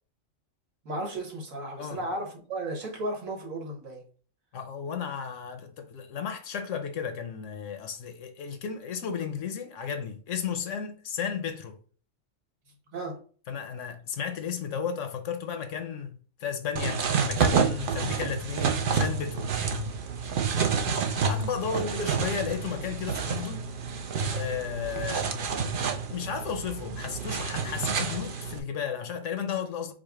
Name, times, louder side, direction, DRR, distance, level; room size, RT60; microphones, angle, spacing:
voice 1, 0.9-4.0 12.9-13.2 21.7-21.9, right 1 dB, 90° right, 1.7 m, -34 dB
voice 2, 4.5-11.8 13.5-19.5 21.3-23.6 24.3-25.3 25.9-29.9, left 7 dB, 70° left, 1.0 m, -34 dB
sound 1, 16.8-28.6, right 6 dB, 55° right, 0.7 m, -29 dB
4.9 x 2.1 x 4.6 m
omnidirectional pair, 1.4 m